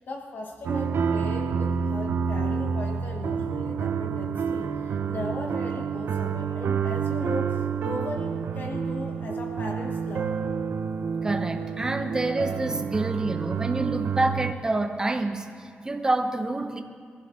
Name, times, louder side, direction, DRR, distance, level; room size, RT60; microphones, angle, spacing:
voice 1, 0.0-10.3, left 2 dB, 55° left, 2 dB, 1.2 m, -37 dB
sound 1, 0.6-14.5, right 6 dB, 80° right, 0.7 m, -28 dB
voice 2, 11.2-16.8, right 2 dB, 20° right, 5 dB, 0.9 m, -27 dB
23.0 x 15.5 x 3.7 m, 2.3 s
wide cardioid pair, 170°, 4 cm